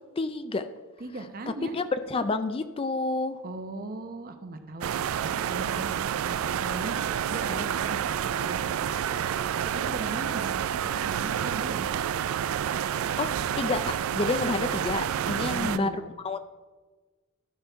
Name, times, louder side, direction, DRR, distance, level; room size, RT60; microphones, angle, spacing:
voice 1, 0.2-0.7 1.5-3.4 7.5-7.7 13.2-13.3 13.6-16.4, left 3 dB, 25° left, 11 dB, 0.4 m, -29 dB
voice 2, 1.0-1.7 3.4-8.9 9.7-10.6 10.9-11.8 15.2-16.0, right 2 dB, 45° right, 7 dB, 0.8 m, -38 dB
sound 1, 4.8-15.8, right 9 dB, 85° right, 0.3 m, -29 dB
12.0 x 5.2 x 4.6 m, 1.3 s
head